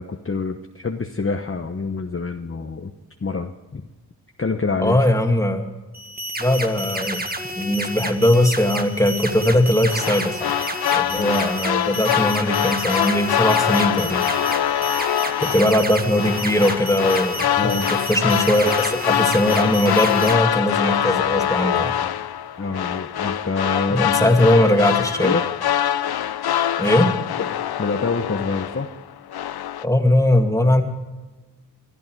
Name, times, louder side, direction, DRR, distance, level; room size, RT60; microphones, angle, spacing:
voice 1, 0.0-2.9 3.2-3.8 4.4-5.1 11.1-11.4 17.6-17.9 22.6-24.0 24.5-24.6 25.2-25.4 27.8-28.9, left 4 dB, 35° left, 4 dB, 1.0 m, -26 dB
voice 2, 4.8-5.7 6.4-7.2 7.6-10.5 10.9-14.2 15.4-21.9 23.9-25.4 26.8-27.1 29.8-30.8, left 1 dB, 10° left, 3 dB, 2.3 m, -20 dB
sound 1, 5.9-20.3, right 1 dB, 25° right, 1.7 m, -30 dB
sound 2, 9.9-29.0 29.3-29.8, left 10 dB, 70° left, 0.6 m, -24 dB
19.5 x 12.5 x 4.7 m, 1.2 s
cardioid pair, 55°, 39 cm